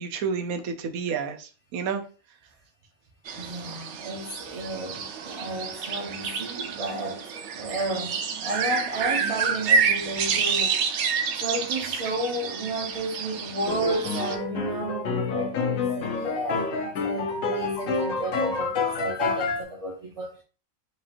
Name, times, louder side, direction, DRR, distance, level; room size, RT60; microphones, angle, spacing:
voice 1, 0.0-2.0, right 6 dB, 90° right, 1.1 m, -30 dB
voice 2, 3.3-10.8 11.3-20.4, right 1 dB, 45° right, 0.4 m, -32 dB
sound 1, 3.3-14.4, right 6 dB, 65° right, 0.8 m, -28 dB
sound 2, 13.7-19.6, left 4 dB, 70° left, 1.1 m, -28 dB
4.9 x 2.5 x 2.9 m
omnidirectional pair, 1.5 m